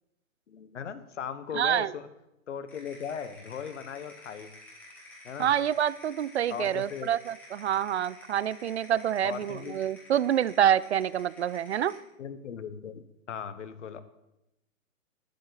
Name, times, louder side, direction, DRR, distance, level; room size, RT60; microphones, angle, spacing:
voice 1, 0.5-2.1 2.5-4.5 5.2-5.5 6.5-7.1 9.2-9.8 12.2-13.0 13.3-14.0, left 7 dB, 60° left, 12 dB, 1.2 m, -38 dB
voice 2, 1.5-1.9 5.4-11.9, right 10 dB, 55° right, 19 dB, 0.5 m, -27 dB
sound 1, 2.7-12.1, left 1 dB, 5° left, 1.5 m, -51 dB
11.5 x 11.5 x 4.0 m, 0.90 s
hypercardioid pair, 170°, 42 cm